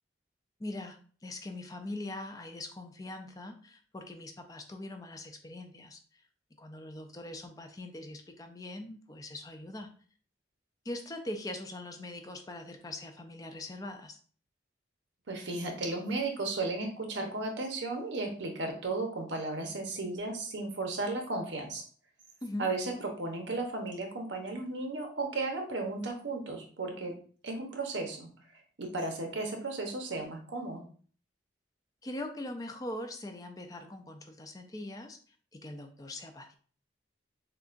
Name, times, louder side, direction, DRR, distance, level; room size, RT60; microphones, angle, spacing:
voice 1, 0.6-6.2 6.6-9.9 10.8-14.2 22.4-22.7 32.0-35.2 35.5-36.6, left 1 dB, 20° left, 5 dB, 0.4 m, -42 dB
voice 2, 15.3-21.8 22.6-22.9 23.2-27.1 27.4-30.9, right 2 dB, 80° right, 3 dB, 0.9 m, -35 dB
6.5 x 2.4 x 2.5 m, 0.43 s
head